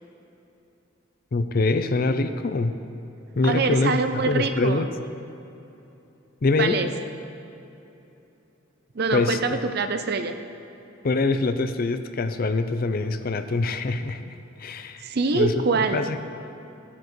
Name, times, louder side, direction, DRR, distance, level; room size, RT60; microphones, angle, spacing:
voice 1, 1.3-2.8 3.4-4.0 4.3-4.9 6.4-6.8 9.1-9.4 11.0-15.0 15.3-15.5 15.9-16.3, left 3 dB, 45° left, 9 dB, 0.5 m, -24 dB
voice 2, 3.4-4.8 6.6-6.9 8.9-10.3 15.0-16.0, right 3 dB, 50° right, 7 dB, 0.6 m, -24 dB
14.5 x 9.8 x 3.1 m, 2.9 s
head